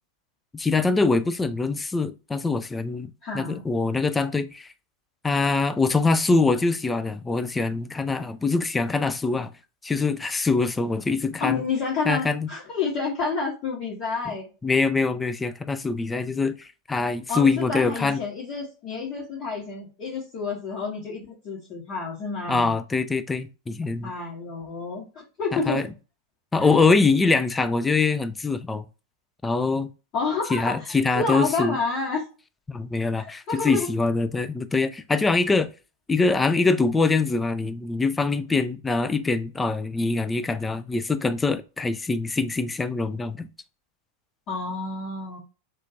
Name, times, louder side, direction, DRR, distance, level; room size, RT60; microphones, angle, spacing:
voice 1, 0.5-4.7 5.2-9.5 9.8-11.6 12.1-12.5 14.6-18.2 22.5-24.1 25.5-25.8 26.5-28.9 29.4-29.9 30.5-31.8 32.7-35.7 36.1-43.5, left 3 dB, 10° left, 0.3 m, -24 dB
voice 2, 3.2-3.6 11.4-14.5 17.3-22.7 24.0-25.8 26.6-26.7 30.1-32.2 33.2-33.9 44.5-45.4, left 4 dB, 35° left, 1.1 m, -29 dB
2.8 x 2.3 x 2.7 m
figure-of-eight pair, 90°, 0 cm